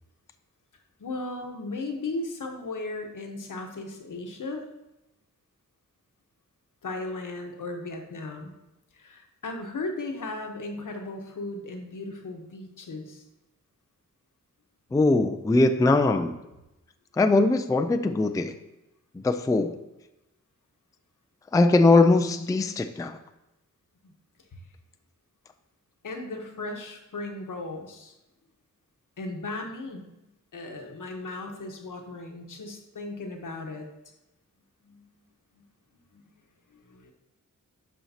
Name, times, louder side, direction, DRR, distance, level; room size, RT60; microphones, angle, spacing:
voice 1, 1.0-4.6 6.8-8.5 8.9-13.2 24.0-24.1 24.5-24.6 26.0-28.1 29.2-30.1 30.5-33.9 34.8-35.1 35.5-35.7 35.9-36.2 36.7-37.1, left 2 dB, 75° left, 3 dB, 1.1 m, -36 dB
voice 2, 14.9-16.4 17.2-18.5 19.2-19.8 21.5-23.2, left 2 dB, 10° left, 7 dB, 0.3 m, -21 dB
12.0 x 4.4 x 2.8 m, 0.93 s
wide cardioid pair, 110°, 32 cm